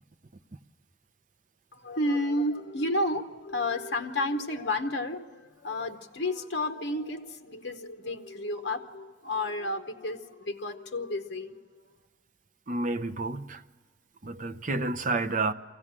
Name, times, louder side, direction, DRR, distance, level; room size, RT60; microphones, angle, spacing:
voice 1, 1.7-11.6, left 1 dB, 55° left, 0.9 m, -31 dB
voice 2, 12.7-13.6 14.2-15.5, right 3 dB, 40° right, 0.6 m, -30 dB
23.0 x 16.0 x 7.4 m
head